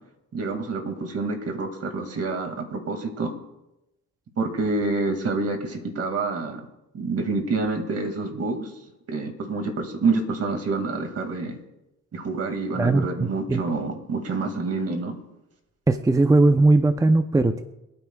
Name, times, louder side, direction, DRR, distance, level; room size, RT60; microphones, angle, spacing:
voice 1, 0.3-3.3 4.4-6.7 6.9-8.7 9.1-11.6 12.1-15.2, right 3 dB, 50° right, 5 dB, 2.2 m, -27 dB
voice 2, 12.7-13.6 15.9-17.6, right 2 dB, 10° right, 8 dB, 0.6 m, -19 dB
26.0 x 9.4 x 2.4 m, 0.93 s
cardioid pair, 90°, 30 cm